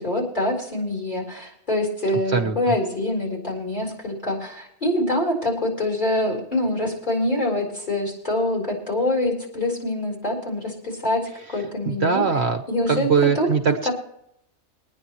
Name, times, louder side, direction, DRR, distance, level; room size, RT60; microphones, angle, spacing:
voice 1, 0.0-12.2 12.7-13.5, left 1 dB, 35° left, -2 dB, 4.5 m, -25 dB
voice 2, 11.8-13.9, right 6 dB, 55° right, 6 dB, 1.3 m, -22 dB
23.0 x 9.8 x 3.1 m, 0.75 s
omnidirectional pair, 1.4 m